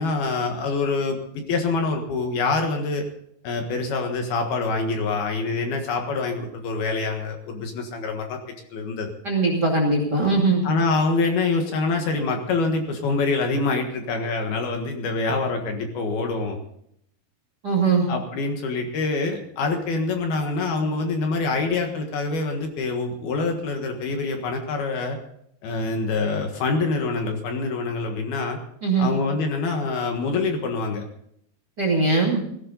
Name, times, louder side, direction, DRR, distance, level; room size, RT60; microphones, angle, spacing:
voice 1, 0.0-3.0 3.4-8.4 8.7-9.1 10.6-16.6 18.1-25.2 25.6-28.6 29.0-31.0, left 3 dB, 65° left, 4 dB, 3.2 m, -25 dB
voice 2, 9.2-10.7 17.6-18.1 28.8-29.1 31.8-32.4, right 3 dB, 30° right, 0 dB, 2.2 m, -20 dB
18.0 x 15.5 x 4.0 m, 0.72 s
omnidirectional pair, 5.2 m